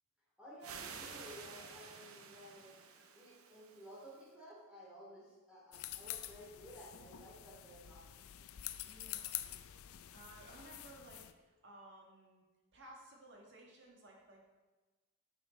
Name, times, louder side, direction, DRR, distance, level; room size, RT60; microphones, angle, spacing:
voice 1, 0.4-2.7 3.1-8.1, equal, 5° right, -6 dB, 2.8 m, -55 dB
sound 1, 0.6-4.3, right 5 dB, 80° right, 0.8 m, -51 dB
sound 2, 5.7-11.3, left 13 dB, 80° left, 0.4 m, -47 dB
voice 2, 8.8-9.4 10.1-12.4 12.7-14.4, right 1 dB, 55° right, -1 dB, 1.6 m, -57 dB
9.5 x 6.6 x 4.2 m, 1.2 s
head